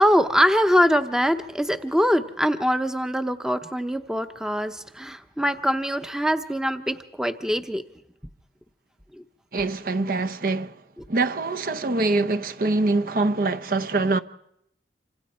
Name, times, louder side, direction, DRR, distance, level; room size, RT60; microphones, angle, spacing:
voice 1, 0.0-7.8 9.1-9.2, equal, 5° right, 0.8 m, -23 dB
voice 2, 9.5-10.8 11.1-14.2, right 3 dB, 55° right, 0.8 m, -24 dB
27.0 x 26.0 x 4.4 m
head